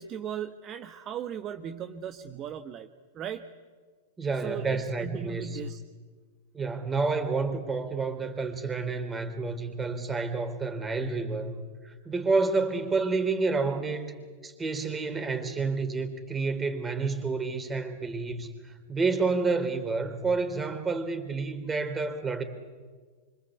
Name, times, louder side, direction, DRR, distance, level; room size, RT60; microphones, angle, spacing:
voice 1, 0.0-2.9 3.1-3.5 4.4-5.8, right 9 dB, 35° right, 7 dB, 1.4 m, -37 dB
voice 2, 4.2-5.6 6.5-11.5 11.8-14.1 14.4-22.4, right 4 dB, 15° right, 7 dB, 4.1 m, -29 dB
26.5 x 25.0 x 8.4 m, 1.5 s
hypercardioid pair, 110°, 0 cm